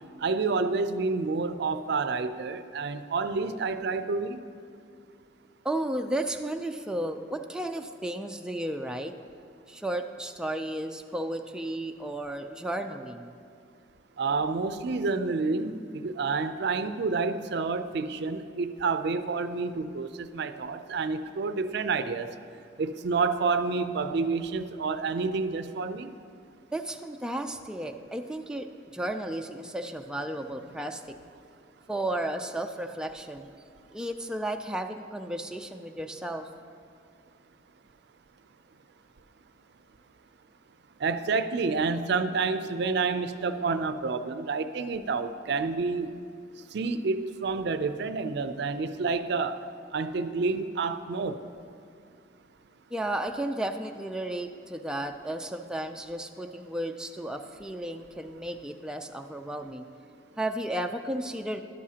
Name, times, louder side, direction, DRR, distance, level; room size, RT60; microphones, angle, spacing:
voice 1, 0.2-4.4 14.2-22.3 22.8-26.1 41.0-46.1 46.7-49.6 49.9-51.4, right 4 dB, 65° right, 11 dB, 0.4 m, -29 dB
voice 2, 5.6-9.1 9.7-13.3 26.7-28.7 28.9-31.0 31.9-33.5 33.9-36.5 52.9-59.8 60.4-61.6, right 1 dB, 5° right, 4 dB, 0.3 m, -33 dB
12.5 x 11.5 x 2.8 m, 2.3 s
head